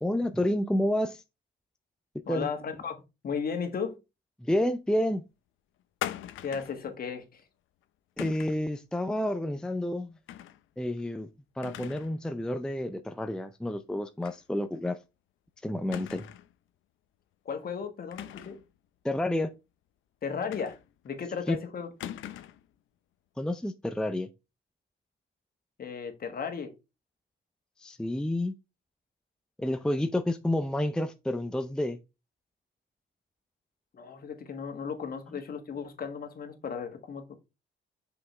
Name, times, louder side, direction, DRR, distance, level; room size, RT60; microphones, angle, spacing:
voice 1, 0.0-1.2 2.3-2.5 4.4-5.2 8.2-10.1 10.8-11.3 11.6-15.0 15.6-16.2 19.0-19.5 21.5-21.6 23.4-24.3 27.8-28.5 29.6-32.0, left 1 dB, 5° left, 0.5 m, -29 dB
voice 2, 2.3-3.0 3.2-4.0 6.4-7.4 17.4-18.6 20.2-20.8 21.0-21.9 25.8-26.7 33.9-37.3, left 6 dB, 50° left, 1.6 m, -35 dB
sound 1, 6.0-6.8 8.2-8.6 10.3-10.6 11.0-11.1 11.6-12.2 12.5-12.6 14.2-14.4 14.8-14.9 15.9-16.5 18.1-18.7 20.5-21.1 22.0-22.7, left 12 dB, 80° left, 0.6 m, -40 dB
5.9 x 5.2 x 3.3 m
cardioid pair, 90°, 20 cm